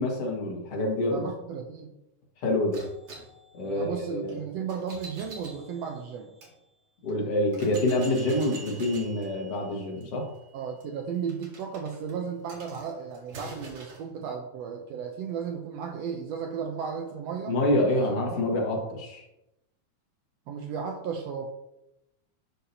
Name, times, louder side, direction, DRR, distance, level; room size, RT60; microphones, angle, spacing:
voice 1, 0.0-1.3 2.4-2.8 3.5-4.4 7.0-10.2 17.5-19.2, left 1 dB, 55° left, -1 dB, 2.6 m, -27 dB
voice 2, 1.1-1.9 3.6-6.3 10.5-17.6 20.5-21.5, right 6 dB, 75° right, 4 dB, 1.6 m, -34 dB
sound 1, 2.7-6.5 7.1-7.2 7.5-14.1, right 2 dB, 50° right, 2.6 m, -47 dB
11.5 x 5.8 x 2.8 m, 0.87 s
omnidirectional pair, 3.6 m